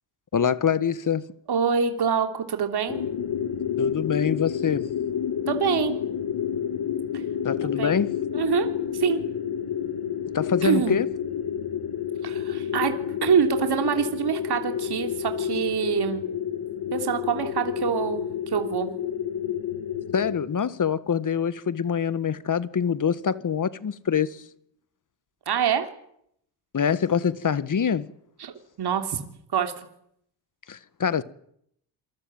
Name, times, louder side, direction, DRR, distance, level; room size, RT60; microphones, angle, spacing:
voice 1, 0.3-1.2 3.8-4.9 7.4-8.1 10.3-11.1 20.1-24.4 26.7-28.1 30.7-31.2, left 7 dB, 40° left, 1.6 m, -25 dB
voice 2, 1.5-3.0 5.5-6.0 7.6-8.0 8.3-9.2 10.6-10.9 12.2-12.9 13.2-16.2 16.9-18.9 25.5-25.9 28.4-28.5 28.8-29.2 29.5-29.9, right 7 dB, 55° right, 3.3 m, -25 dB
sound 1, 2.9-20.4, left 9 dB, 55° left, 2.6 m, -30 dB
28.0 x 22.5 x 9.0 m
supercardioid pair, 65°, 47 cm